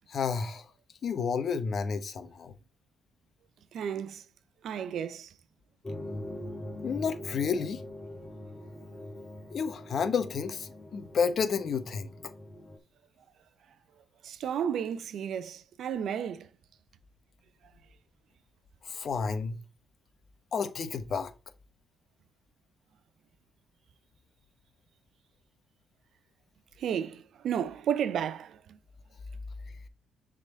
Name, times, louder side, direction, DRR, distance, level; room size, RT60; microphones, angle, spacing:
voice 1, 0.1-0.7 1.0-2.5 6.8-7.8 9.5-12.1 18.8-19.6 20.5-21.3, left 6 dB, 55° left, 1.0 m, -31 dB
voice 2, 3.7-4.2 4.6-5.3 14.2-16.5 26.8-28.6, right 8 dB, 70° right, 0.6 m, -32 dB
sound 1, 5.8-12.8, left 1 dB, 15° left, 2.0 m, -42 dB
6.5 x 3.9 x 3.9 m
cardioid pair, 90°, 0 cm